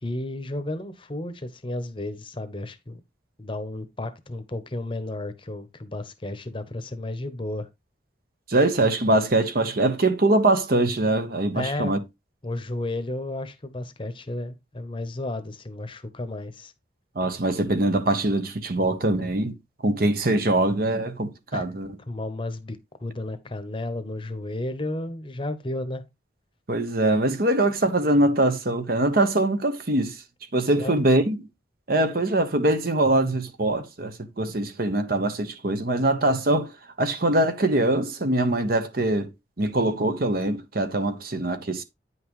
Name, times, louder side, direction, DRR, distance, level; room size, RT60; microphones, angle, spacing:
voice 1, 0.0-3.0 3.4-7.7 11.5-11.9 12.4-16.7 21.5-21.6 22.1-26.1 30.8-30.9, left 2 dB, 25° left, 0.9 m, -33 dB
voice 2, 8.5-12.0 17.2-19.5 19.8-21.9 26.7-30.2 30.5-31.4 31.9-36.7 37.0-39.3 39.6-41.8, right 2 dB, 50° right, 1.0 m, -23 dB
9.4 x 5.7 x 3.1 m
head